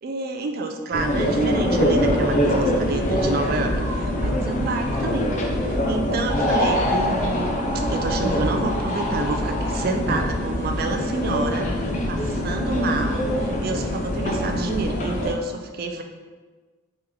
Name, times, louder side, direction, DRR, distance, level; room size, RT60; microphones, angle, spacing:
voice 1, 0.0-11.7 12.1-16.0, right 3 dB, 45° right, 5 dB, 0.3 m, -29 dB
sound 1, 0.9-15.3, equal, 35° left, 0.4 m, -23 dB
3.3 x 3.0 x 3.6 m, 1.4 s
head